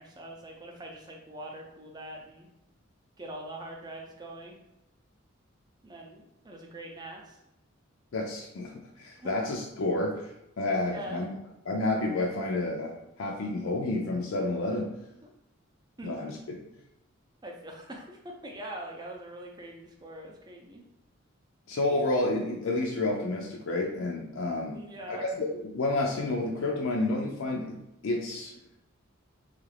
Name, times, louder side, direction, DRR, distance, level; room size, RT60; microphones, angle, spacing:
voice 1, 0.0-2.5 3.2-4.6 5.8-7.4 9.2-9.3 10.9-11.2 16.0-16.2 17.4-20.8 24.7-25.2, right 1 dB, 20° right, 0 dB, 0.5 m, -43 dB
voice 2, 8.1-11.3 11.7-14.9 16.0-16.6 21.7-24.8 25.1-28.5, left 2 dB, 70° left, 0 dB, 0.4 m, -30 dB
3.2 x 2.4 x 3.3 m, 0.87 s
head